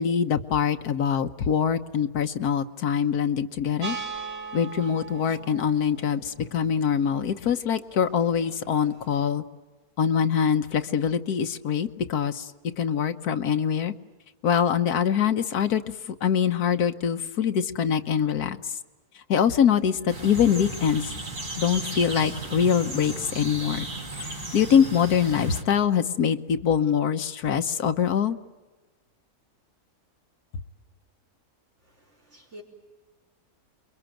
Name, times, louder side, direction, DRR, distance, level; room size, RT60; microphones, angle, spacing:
voice 1, 0.0-4.0 4.5-9.4 10.0-12.5 12.8-13.9 14.4-15.8 16.2-18.6 19.3-21.1 21.6-23.8 24.2-28.4, left 8 dB, 85° left, 8 dB, 1.6 m, -24 dB
sound 1, 3.8-9.1, right 5 dB, 65° right, 2.4 m, -40 dB
sound 2, 20.1-25.6, right 2 dB, 80° right, 4.5 m, -35 dB
voice 2, 31.8-32.6, left 1 dB, 50° right, 1 dB, 4.6 m, -49 dB
28.5 x 22.5 x 9.1 m, 1.2 s
omnidirectional pair, 1.6 m